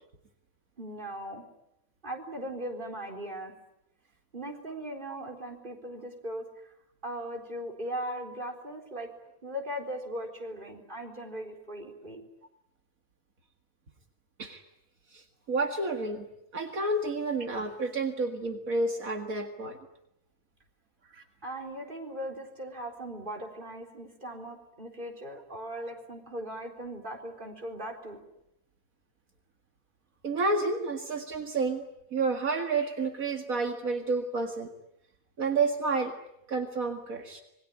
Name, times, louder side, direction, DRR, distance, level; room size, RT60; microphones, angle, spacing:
voice 1, 0.8-1.4 2.0-3.5 4.3-6.7 7.0-9.1 9.4-12.2 21.4-28.2, right 1 dB, 35° right, 3 dB, 4.3 m, -39 dB
voice 2, 15.1-16.2 16.5-19.8 30.2-31.8 32.1-34.7 35.4-36.1 36.5-37.4, right 3 dB, 75° right, 5 dB, 2.4 m, -30 dB
26.5 x 22.0 x 10.0 m, 0.81 s
omnidirectional pair, 1.5 m